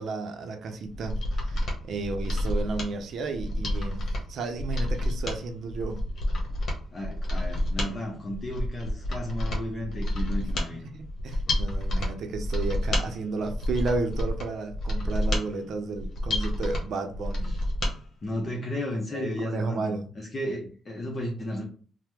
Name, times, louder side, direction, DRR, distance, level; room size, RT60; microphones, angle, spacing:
voice 1, 0.0-6.0 10.9-17.6 19.1-20.1, right 3 dB, 65° right, 0.6 m, -33 dB
Mechanisms, 0.9-17.9 18.3-18.4, left 1 dB, 60° left, 0.9 m, -29 dB
voice 2, 6.9-10.9 17.4-17.6 18.2-21.6, left 1 dB, 35° left, 0.7 m, -33 dB
2.8 x 2.1 x 3.4 m
cardioid pair, 90°, 0 cm